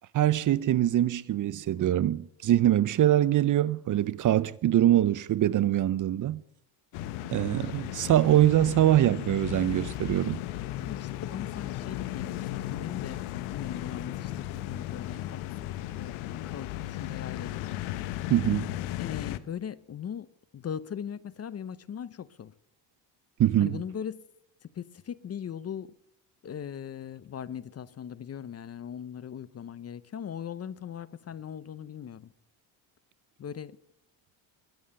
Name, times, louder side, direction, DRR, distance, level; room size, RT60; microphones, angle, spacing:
voice 1, 0.1-6.4 7.3-10.4 18.3-18.7 23.4-23.8, right 12 dB, 40° right, 0.6 m, -23 dB
sound 1, 6.9-19.4, left 14 dB, 85° left, 1.1 m, -35 dB
voice 2, 10.8-17.8 19.0-22.5 23.6-24.2 24.7-25.9 26.4-32.3 33.4-33.8, left 8 dB, 30° left, 0.7 m, -39 dB
21.5 x 9.4 x 6.7 m
cardioid pair, 105°, 47 cm